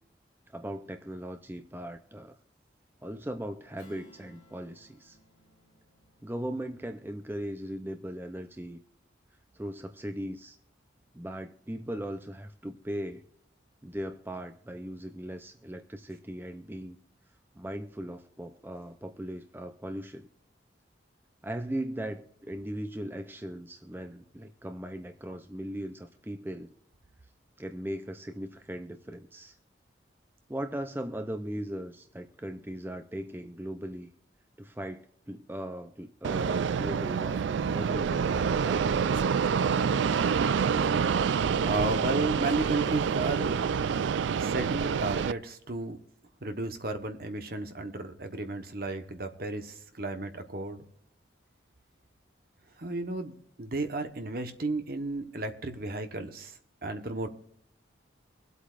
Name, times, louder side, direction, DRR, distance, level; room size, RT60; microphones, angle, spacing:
voice 1, 0.5-2.4 3.0-5.2 6.2-8.8 9.5-10.6 11.1-13.2 13.8-17.0 17.6-20.3 21.4-26.7 27.6-29.6 30.5-34.1 34.6-38.8, right 1 dB, 10° right, 7 dB, 0.5 m, -38 dB
Strum, 3.8-8.7, equal, 25° left, 3.9 m, -62 dB
Fixed-wing aircraft airplane, 36.2-45.3, right 6 dB, 75° right, 0.4 m, -27 dB
voice 2, 41.6-43.8 44.4-46.0 46.4-50.9 52.8-57.3, right 2 dB, 50° right, 7 dB, 1.2 m, -33 dB
24.5 x 8.2 x 2.5 m, 0.68 s
head